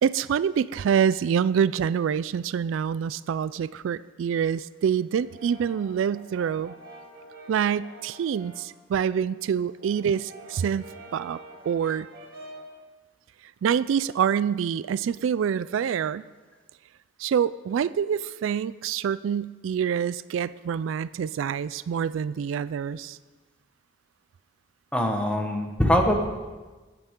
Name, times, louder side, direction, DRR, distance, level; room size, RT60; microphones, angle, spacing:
voice 1, 0.0-6.7 7.5-10.9 11.1-11.4 11.7-12.1 13.6-16.2 17.2-23.2, right 7 dB, 80° right, 17 dB, 0.3 m, -26 dB
Brass instrument, 5.1-8.8 9.1-12.8, right 2 dB, 55° right, 2.2 m, -47 dB
voice 2, 24.9-26.3, equal, 5° left, 3 dB, 1.3 m, -23 dB
21.0 x 8.1 x 3.7 m, 1.3 s
head